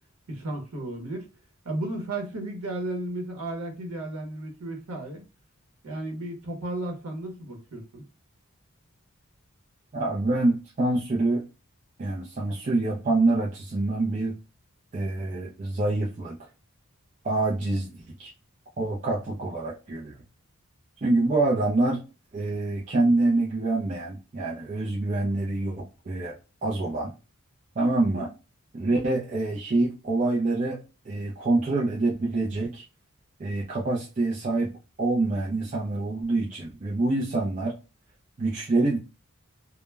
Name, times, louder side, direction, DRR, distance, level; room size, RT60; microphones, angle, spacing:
voice 1, 0.3-1.3 1.6-5.2 5.8-8.0 28.1-28.3, right 1 dB, 85° right, 0.8 m, -34 dB
voice 2, 9.9-11.4 12.0-14.3 14.9-16.4 17.2-18.3 18.8-20.1 21.0-22.0 22.3-26.3 26.6-27.1 27.8-28.3 28.7-30.8 31.1-32.8 33.4-34.7 35.0-37.7 38.4-39.0, right 2 dB, 35° right, 0.4 m, -26 dB
2.1 x 2.1 x 3.2 m
head